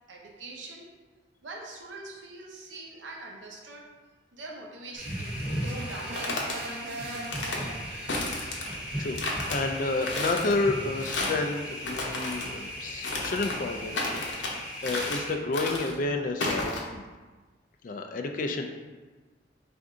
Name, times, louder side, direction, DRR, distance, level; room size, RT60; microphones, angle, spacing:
voice 1, 0.1-0.9 1.4-3.9 4.3-6.6, right 2 dB, 85° right, -1 dB, 0.8 m, -43 dB
sound 1, 4.9-15.3, equal, 5° right, 0.8 m, -37 dB
sound 2, 5.6-8.2, right 1 dB, 55° right, 0.5 m, -39 dB
sound 3, 5.9-6.6 7.1-7.6 8.1-8.8 9.2-9.6 10.0-10.5 11.0-11.4 11.8-12.5 13.0-13.6 13.9-14.5 14.8-15.3 15.5-15.9 16.4-16.8, left 2 dB, 70° left, 0.7 m, -32 dB
voice 2, 9.5-17.0 17.8-18.6, left 3 dB, 45° left, 4 dB, 0.4 m, -30 dB
4.6 x 2.6 x 3.6 m, 1.3 s
head